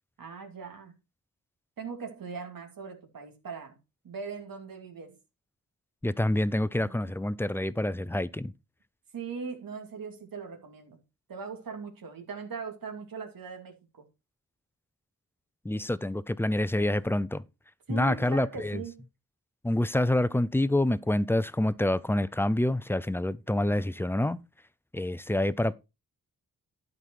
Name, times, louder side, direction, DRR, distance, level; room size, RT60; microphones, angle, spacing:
voice 1, 0.2-0.9 1.8-3.8 4.0-5.2 6.8-6.9 9.1-11.0 11.3-14.1 17.9-19.0, right 4 dB, 85° right, 2.5 m, -40 dB
voice 2, 6.0-8.5 15.6-17.4 17.9-18.8 19.6-24.4 24.9-25.7, left 1 dB, 5° left, 0.4 m, -27 dB
12.0 x 5.4 x 4.6 m
wide cardioid pair, 125°, 34 cm